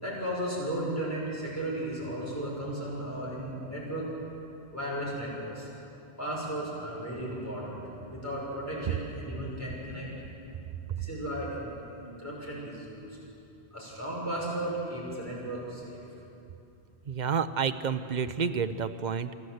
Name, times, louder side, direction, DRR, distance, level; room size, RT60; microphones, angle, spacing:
voice 1, 0.0-4.1 4.7-5.7 6.2-10.1 10.9-13.2 13.7-16.0, right 1 dB, 15° left, -5 dB, 5.9 m, -35 dB
voice 2, 17.1-19.3, right 6 dB, 50° right, 11 dB, 0.7 m, -29 dB
28.5 x 11.5 x 7.9 m, 2.8 s
omnidirectional pair, 1.1 m